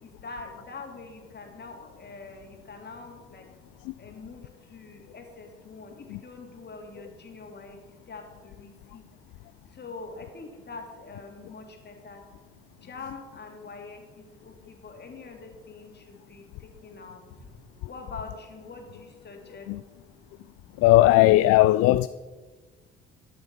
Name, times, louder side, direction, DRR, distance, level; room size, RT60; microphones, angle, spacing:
voice 1, 0.0-3.4 4.0-4.5 4.7-7.8 8.1-9.0 9.8-12.2 12.8-16.4 16.8-17.2 17.8-19.7, left 4 dB, 35° left, 3.0 m, -44 dB
voice 2, 20.8-22.1, left 16 dB, 55° left, 0.4 m, -18 dB
13.0 x 11.0 x 5.5 m
figure-of-eight pair, 50°, 29 cm